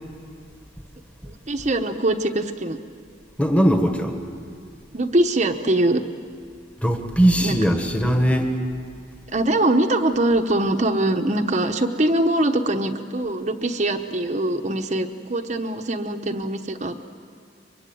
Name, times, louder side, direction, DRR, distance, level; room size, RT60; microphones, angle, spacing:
voice 1, 1.2-2.8 4.9-6.0 7.4-7.6 9.3-17.1, right 1 dB, 40° right, 4 dB, 1.0 m, -22 dB
voice 2, 3.4-4.2 6.8-8.5, equal, 5° left, 4 dB, 1.6 m, -19 dB
23.5 x 23.5 x 9.2 m, 2.3 s
head